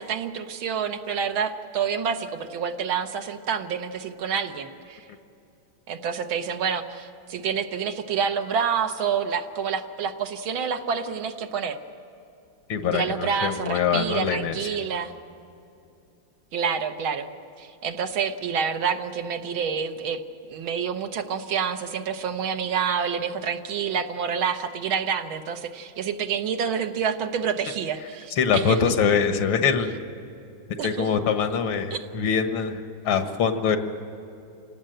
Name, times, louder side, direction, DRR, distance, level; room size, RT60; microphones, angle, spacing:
voice 1, 0.0-5.0 5.9-11.8 12.9-15.1 16.5-17.3 17.6-20.2 20.5-28.8 30.8-31.1 31.9-32.0, right 7 dB, 80° right, 7 dB, 1.9 m, -28 dB
voice 2, 12.7-14.7 28.4-29.9 30.8-33.8, left 6 dB, 85° left, 8 dB, 2.1 m, -23 dB
27.5 x 18.0 x 7.8 m, 2.7 s
omnidirectional pair, 2.2 m